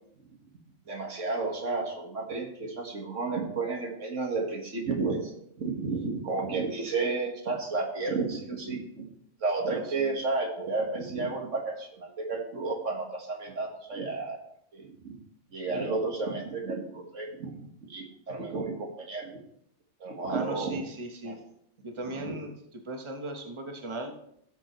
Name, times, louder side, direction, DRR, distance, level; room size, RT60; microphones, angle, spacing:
voice 1, 0.9-5.3 5.6-9.0 9.4-14.4 14.7-15.2 15.5-19.3 20.0-20.8 21.2-21.4 22.2-22.3, right 3 dB, 80° right, 1 dB, 2.0 m, -32 dB
voice 2, 9.7-10.2 20.3-21.3 21.8-24.1, right 1 dB, 25° right, 3 dB, 1.1 m, -38 dB
16.5 x 6.8 x 3.2 m, 0.74 s
omnidirectional pair, 1.3 m